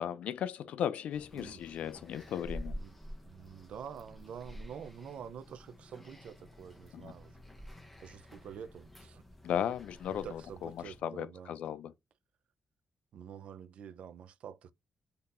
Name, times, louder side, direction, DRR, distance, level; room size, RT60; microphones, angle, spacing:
voice 1, 0.0-2.8 6.9-7.1 9.4-11.9, left 9 dB, 85° left, 0.4 m, -36 dB
sound 1, 1.1-11.0, equal, 5° left, 0.6 m, -49 dB
voice 2, 3.3-7.4 8.0-9.2 10.1-11.5 13.1-14.7, right 8 dB, 65° right, 0.3 m, -47 dB
3.6 x 2.7 x 2.5 m
wide cardioid pair, 175°, 2 cm